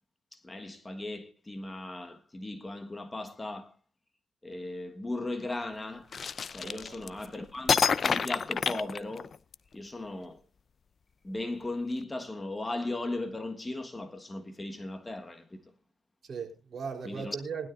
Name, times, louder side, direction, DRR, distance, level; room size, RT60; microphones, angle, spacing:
voice 1, 0.3-3.7 4.4-6.1 6.5-9.3 9.7-10.4 11.2-15.6 17.0-17.4, left 2 dB, 20° left, 1.4 m, -37 dB
sound 1, 6.1-7.3 7.7-9.5, left 6 dB, 45° left, 0.5 m, -28 dB
voice 2, 6.6-7.1 16.2-17.7, right 6 dB, 45° right, 3.8 m, -38 dB
20.0 x 12.5 x 2.5 m
cardioid pair, 90°, 0 cm